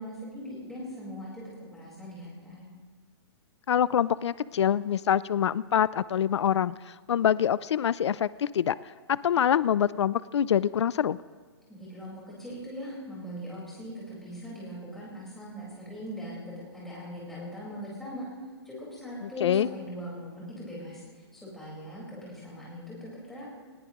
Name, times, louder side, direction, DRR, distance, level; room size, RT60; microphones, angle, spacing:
voice 1, 0.0-2.7 11.7-16.4 16.7-18.2 18.6-23.4, equal, ahead, -7 dB, 4.5 m, -40 dB
voice 2, 3.7-8.8 9.1-11.2 19.4-19.7, left 9 dB, 90° left, 19 dB, 0.4 m, -25 dB
19.5 x 18.5 x 3.0 m, 1.5 s
hypercardioid pair, 170°, 14 cm